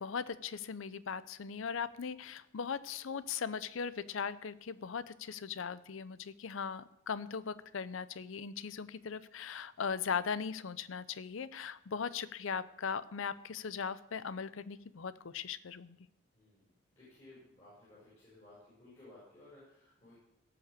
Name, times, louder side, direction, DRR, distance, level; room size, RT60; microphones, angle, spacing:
voice 1, 0.0-16.0, left 6 dB, 75° left, 16 dB, 0.5 m, -39 dB
voice 2, 16.3-20.2, left 2 dB, 30° left, -9 dB, 6.4 m, -58 dB
17.0 x 5.8 x 6.8 m, 0.83 s
head